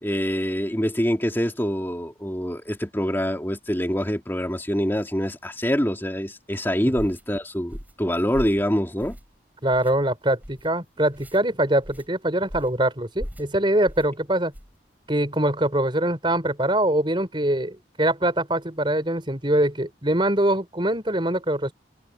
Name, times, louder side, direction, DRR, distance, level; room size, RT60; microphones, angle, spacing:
voice 1, 0.0-9.2, equal, 10° left, 2.9 m, -25 dB
sound 1, 6.9-7.2 7.7-8.0 8.3-8.6 9.0-9.4 9.7-9.9 10.4-10.7 11.1-11.4 11.8-12.1 12.5-12.8 13.2-13.5 13.9-14.1 14.5-14.8, equal, 10° right, 5.2 m, -38 dB
voice 2, 9.6-14.5 15.1-21.7, right 1 dB, 25° right, 4.7 m, -23 dB
head